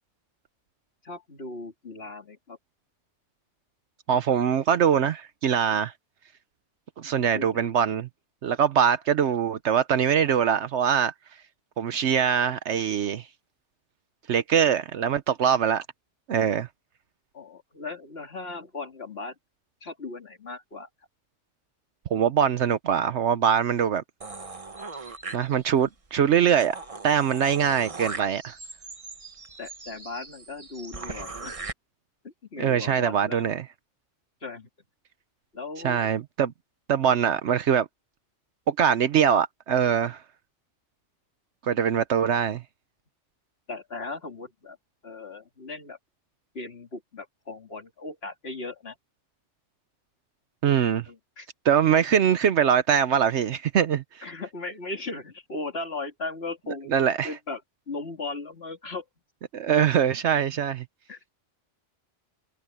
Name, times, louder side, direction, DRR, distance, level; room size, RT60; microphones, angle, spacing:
voice 1, 1.0-2.6 7.1-7.7 17.3-19.4 19.8-20.9 29.6-31.6 32.2-33.4 34.4-34.7 35.5-36.1 43.7-44.8 45.0-46.0 46.5-49.0 51.1-51.5 54.2-56.9 57.2-57.6 57.9-59.0 61.1-61.2, left 3 dB, 55° left, 2.9 m, -37 dB
voice 2, 4.1-5.9 7.0-8.1 8.4-11.1 11.8-13.3 14.3-15.8 16.3-16.7 22.1-24.0 25.3-26.7 27.0-28.6 32.6-33.6 35.8-36.5 36.9-37.9 38.7-40.2 41.6-42.6 50.6-51.1 51.6-54.2 56.9-57.3 59.5-60.8, right 8 dB, 70° right, 1.0 m, -23 dB
sound 1, 24.2-25.9 26.3-26.4 26.6-31.7, right 3 dB, 30° right, 1.2 m, -40 dB
omnidirectional pair, 1.2 m